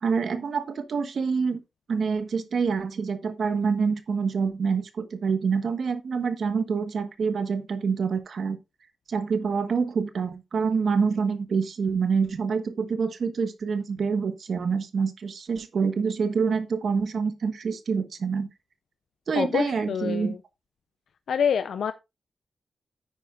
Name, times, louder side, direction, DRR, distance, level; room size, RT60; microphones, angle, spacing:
voice 1, 0.0-1.6 1.9-8.6 9.1-18.5 19.3-20.3, right 5 dB, 65° right, 1.3 m, -26 dB
voice 2, 19.3-20.4 21.3-21.9, left 7 dB, 90° left, 0.6 m, -26 dB
10.0 x 9.0 x 2.4 m
wide cardioid pair, 125°, 0 cm